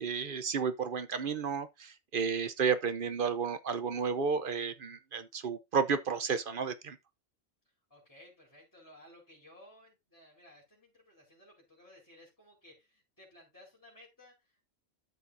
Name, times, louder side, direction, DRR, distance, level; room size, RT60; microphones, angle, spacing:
voice 1, 0.0-7.0, right 6 dB, 50° right, 0.8 m, -32 dB
voice 2, 7.9-14.7, left 1 dB, 15° left, 4.4 m, -58 dB
13.0 x 6.8 x 2.6 m
omnidirectional pair, 1.3 m